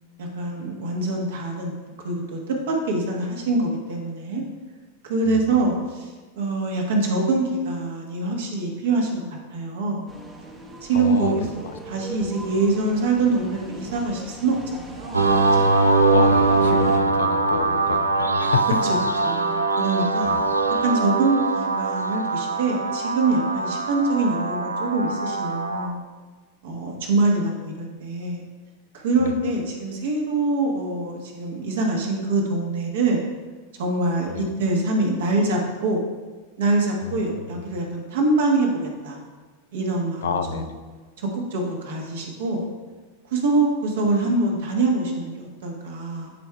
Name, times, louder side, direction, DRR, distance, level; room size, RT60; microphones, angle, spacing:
voice 1, 0.2-1.7 2.0-4.4 5.0-10.1 10.8-15.2 15.6-15.7 19.2-20.3 20.8-26.0 26.6-28.4 28.9-33.2 33.8-36.1 36.6-39.2 39.7-40.7 41.2-42.7 43.3-46.3, right 2 dB, 55° right, 0 dB, 1.3 m, -24 dB
voice 2, 5.3-5.6 10.9-11.7 12.2-12.3 15.7-18.8 20.2-20.4 29.2-29.4 34.3-34.5 37.0-37.7 40.2-40.7, left 6 dB, 65° left, 7 dB, 0.5 m, -30 dB
sound 1, 10.1-17.0, right 2 dB, 15° right, 0.9 m, -39 dB
sound 2, 15.1-25.9, right 3 dB, 80° right, 0.4 m, -22 dB
11.0 x 4.6 x 2.3 m, 1.4 s
figure-of-eight pair, 90°, 0 cm